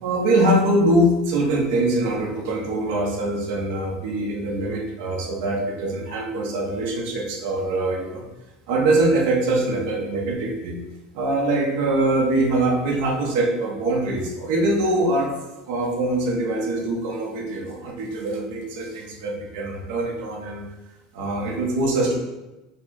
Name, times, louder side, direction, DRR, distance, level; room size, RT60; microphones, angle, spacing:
voice 1, 0.0-8.2 8.7-10.8 11.1-15.3 15.7-20.6 21.1-22.2, right 1 dB, 65° right, -1 dB, 1.0 m, -23 dB
5.5 x 2.2 x 3.9 m, 1.1 s
supercardioid pair, 150°, 0 cm